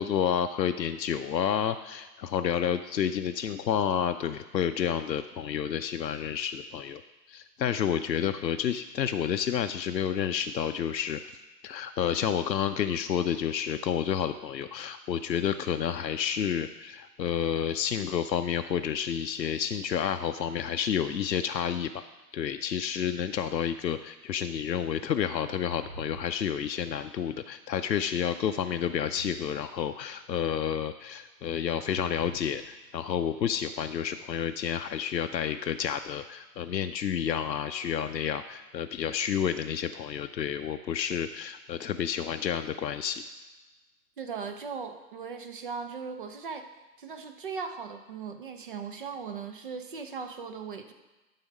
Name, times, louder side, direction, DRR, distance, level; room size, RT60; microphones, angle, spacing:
voice 1, 0.0-7.0 7.3-11.2 11.6-21.9 22.3-43.2, left 8 dB, 85° left, 8 dB, 0.6 m, -30 dB
sound 1, 25.5-27.1 28.5-30.2 31.8-33.3, right 1 dB, 85° right, 2.6 m, -48 dB
voice 2, 44.2-46.7 47.0-50.9, right 5 dB, 35° right, 7 dB, 0.6 m, -38 dB
12.0 x 4.2 x 5.3 m, 1.1 s
figure-of-eight pair, 135°, 49 cm